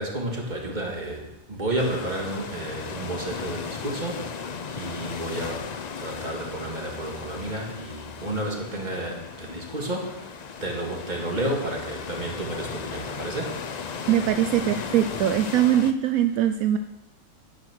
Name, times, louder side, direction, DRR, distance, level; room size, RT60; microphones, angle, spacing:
voice 1, 0.0-4.4 4.7-5.7 6.0-10.3 10.6-13.6, right 1 dB, 30° right, 0 dB, 2.2 m, -31 dB
sound 1, 1.8-15.9, left 6 dB, 55° left, 0.4 m, -36 dB
voice 2, 14.1-16.8, right 11 dB, 80° right, 9 dB, 1.0 m, -22 dB
10.5 x 8.7 x 6.2 m, 0.94 s
omnidirectional pair, 1.5 m